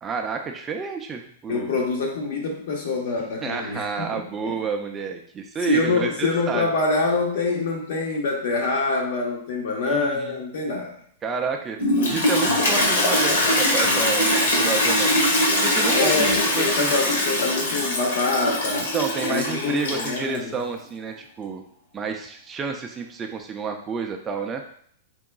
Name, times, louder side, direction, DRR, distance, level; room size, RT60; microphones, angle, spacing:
voice 1, 0.0-1.7 3.4-6.7 9.8-10.3 11.2-11.8 12.1-15.2 15.6-16.9 18.9-21.6 21.9-24.6, right 5 dB, 15° right, 3 dB, 0.3 m, -30 dB
voice 2, 1.5-4.6 5.6-10.9 15.9-18.9 19.2-20.6, left 3 dB, 60° left, 0 dB, 1.1 m, -25 dB
Toilet flush, 11.8-20.4, left 1 dB, 85° left, 1.2 m, -22 dB
4.7 x 3.5 x 2.3 m, 0.63 s
hypercardioid pair, 150°, 0 cm